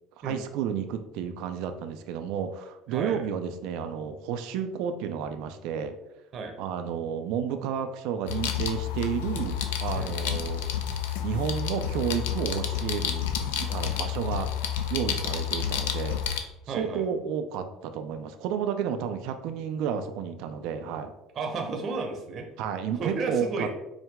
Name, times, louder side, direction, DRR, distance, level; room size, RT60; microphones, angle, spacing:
voice 1, 0.2-6.0 6.6-10.7 11.2-14.5 14.9-16.2 16.7-21.1 22.6-23.7, right 8 dB, 70° right, 8 dB, 0.3 m, -31 dB
voice 2, 2.9-3.3 6.3-6.5 9.9-10.1 16.7-17.0 21.3-22.5 22.9-23.7, right 4 dB, 50° right, 3 dB, 0.7 m, -32 dB
sound 1, 8.3-16.4, left 9 dB, 80° left, 0.4 m, -30 dB
4.6 x 2.1 x 3.5 m, 0.94 s
hypercardioid pair, 70°, 0 cm